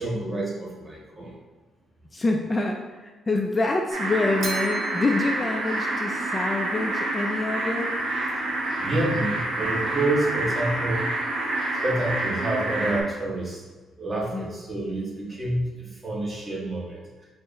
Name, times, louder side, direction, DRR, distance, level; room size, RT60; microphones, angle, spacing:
voice 1, 0.0-1.4 8.3-11.1 11.7-13.6 14.0-17.3, right 1 dB, 25° right, -3 dB, 1.1 m, -28 dB
voice 2, 2.1-7.9 14.3-14.5, left 2 dB, 25° left, 2 dB, 0.3 m, -26 dB
sound 1, 3.9-13.0, right 2 dB, 85° right, 0.9 m, -28 dB
Bell, 4.4-6.6, right 2 dB, 60° right, 0.6 m, -39 dB
4.5 x 2.1 x 3.5 m, 1.3 s
cardioid pair, 90°, 0 cm